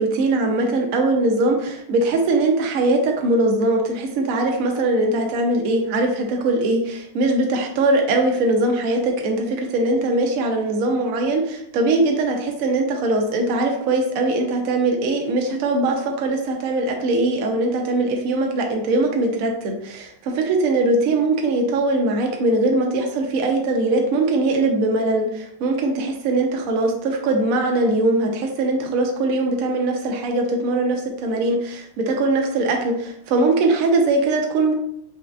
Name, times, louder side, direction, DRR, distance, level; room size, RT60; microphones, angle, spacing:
voice 1, 0.0-34.7, right 2 dB, 70° right, 2 dB, 0.8 m, -21 dB
4.3 x 2.5 x 2.3 m, 0.73 s
omnidirectional pair, 2.1 m